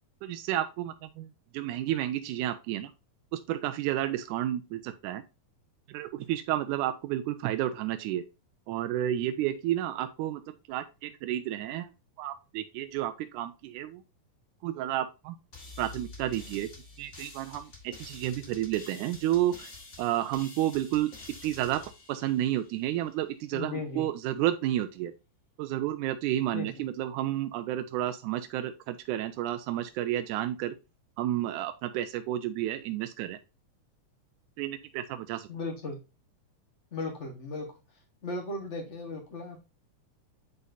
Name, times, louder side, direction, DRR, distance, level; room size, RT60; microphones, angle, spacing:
voice 1, 0.2-2.9 3.3-5.2 5.9-8.2 8.7-10.4 10.7-11.9 12.2-14.0 14.6-15.4 15.8-16.7 17.0-19.7 20.0-21.1 21.4-21.8 22.1-25.1 25.6-30.8 31.2-33.4 34.6-35.5, right 13 dB, 80° right, 8 dB, 2.0 m, -31 dB
sound 1, 15.5-23.0, left 3 dB, 35° left, 1.3 m, -48 dB
voice 2, 23.5-24.1 26.5-26.7 35.5-36.0 36.9-37.7 38.2-39.7, left 3 dB, 70° left, 2 dB, 0.6 m, -36 dB
9.3 x 4.0 x 2.6 m, 0.28 s
omnidirectional pair, 3.6 m